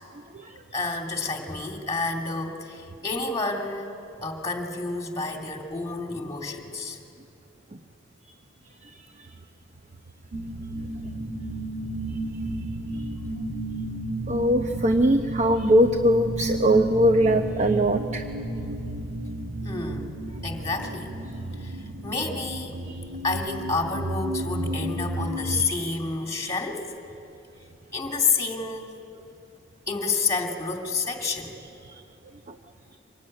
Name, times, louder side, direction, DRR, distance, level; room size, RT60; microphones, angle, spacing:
voice 1, 0.7-7.0 18.5-18.7 19.6-20.2 20.4-21.1 21.6-22.8 23.2-27.0 27.9-28.9 29.9-32.0, left 4 dB, 15° left, 2 dB, 2.6 m, -29 dB
sound 1, 10.3-25.7, right 1 dB, 85° right, 1.9 m, -32 dB
voice 2, 14.3-18.2, equal, 35° right, 6 dB, 0.8 m, -21 dB
25.5 x 19.5 x 9.8 m, 2.8 s
head